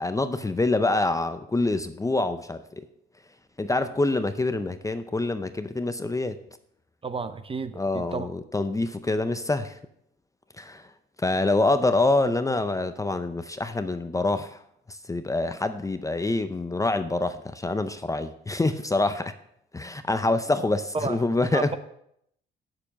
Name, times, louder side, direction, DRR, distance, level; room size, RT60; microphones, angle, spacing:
voice 1, 0.0-2.9 3.6-6.4 7.8-9.8 10.6-10.8 11.2-14.6 14.9-19.3 19.7-21.8, left 2 dB, 15° left, 10 dB, 0.6 m, -26 dB
voice 2, 7.0-8.3 20.9-21.2 21.5-21.8, right 4 dB, 25° right, 11 dB, 0.8 m, -31 dB
7.8 x 6.8 x 7.2 m, 0.73 s
cardioid pair, 90°, 20 cm